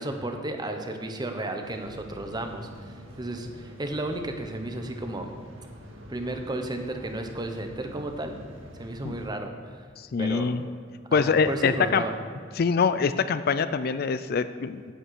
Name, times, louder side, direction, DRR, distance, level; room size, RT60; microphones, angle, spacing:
voice 1, 0.0-5.3 6.1-8.4 8.8-9.8 10.2-10.6 11.1-12.1, right 1 dB, 20° right, 5 dB, 1.0 m, -33 dB
sound 1, 1.6-9.3, equal, 90° right, 1.8 m, -46 dB
voice 2, 10.0-10.6 11.1-12.0 12.6-14.9, left 5 dB, 50° left, 13 dB, 0.4 m, -24 dB
9.9 x 7.9 x 6.5 m, 2.1 s
head